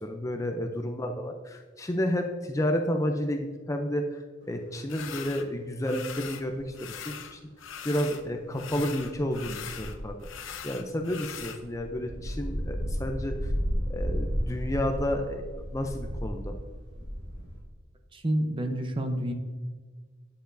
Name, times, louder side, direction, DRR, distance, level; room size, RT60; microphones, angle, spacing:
voice 1, 0.0-7.4 7.8-10.2 10.6-13.5 13.9-15.4 15.7-16.5, equal, 15° left, 4 dB, 0.4 m, -31 dB
sound 1, 4.9-5.5 5.8-6.5 6.7-8.2 8.5-11.6, left 8 dB, 85° left, 0.6 m, -41 dB
sound 2, 6.5-6.8 8.7-10.5 11.2-17.6, equal, 65° right, 1.5 m, -33 dB
voice 2, 18.1-19.3, right 1 dB, 25° right, 5 dB, 0.7 m, -28 dB
9.3 x 6.7 x 2.6 m, 1.5 s
head